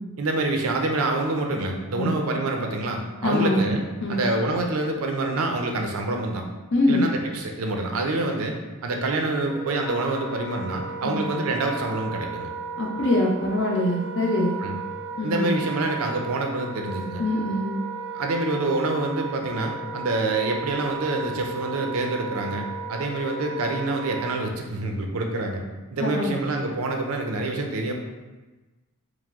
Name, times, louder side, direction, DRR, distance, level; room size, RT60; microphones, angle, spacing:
voice 1, 0.2-3.8 4.1-6.4 6.9-8.5 8.8-12.5 14.6-14.8 15.2-17.2 18.1-25.6 25.9-27.9, right 2 dB, 75° right, 3 dB, 0.5 m, -26 dB
voice 2, 3.2-3.6 4.0-4.2 6.7-7.0 11.0-11.2 12.8-14.6 15.2-15.5 17.2-17.7 26.0-26.4, left 1 dB, 55° left, -1 dB, 0.7 m, -23 dB
Wind instrument woodwind instrument, 9.4-24.4, right 4 dB, 5° right, 0.6 m, -35 dB
4.7 x 2.1 x 3.5 m, 1.2 s
head